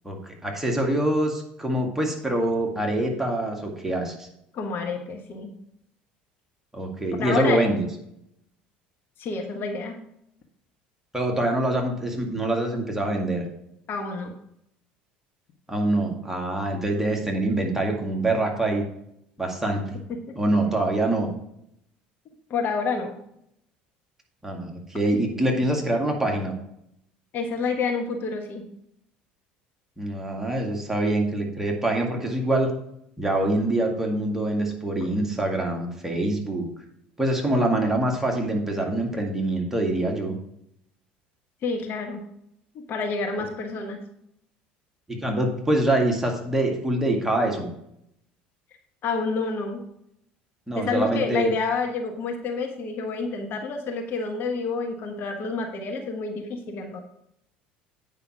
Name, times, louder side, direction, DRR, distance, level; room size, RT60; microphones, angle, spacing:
voice 1, 0.0-4.3 6.7-7.8 11.1-13.5 15.7-18.9 19.4-20.0 20.4-21.3 24.4-26.5 30.0-32.7 33.2-36.7 37.2-40.4 45.1-47.7 50.7-51.5, right 1 dB, 10° right, 0 dB, 2.1 m, -25 dB
voice 2, 4.5-5.5 7.2-7.7 9.2-10.0 13.9-14.3 20.1-20.4 22.5-23.1 27.3-28.7 41.6-42.2 42.9-44.0 49.0-49.8 50.7-57.0, left 4 dB, 45° left, 3 dB, 1.3 m, -28 dB
9.0 x 5.5 x 4.7 m, 0.77 s
figure-of-eight pair, 65°, 5 cm